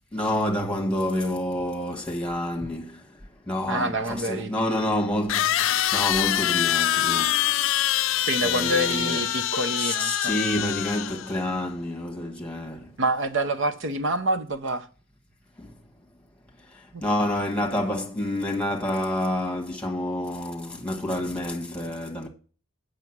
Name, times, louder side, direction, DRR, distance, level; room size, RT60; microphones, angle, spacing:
voice 1, 0.1-3.0 3.5-7.4 8.2-9.3 9.8-12.9 17.0-22.3, left 1 dB, 5° left, 1.4 m, -28 dB
sound 1, 3.7-3.8 5.3-11.4, left 12 dB, 65° left, 0.4 m, -25 dB
voice 2, 3.7-4.5 8.3-10.4 13.0-14.9 16.9-17.0, right 2 dB, 60° right, 0.7 m, -27 dB
8.2 x 6.6 x 6.0 m
head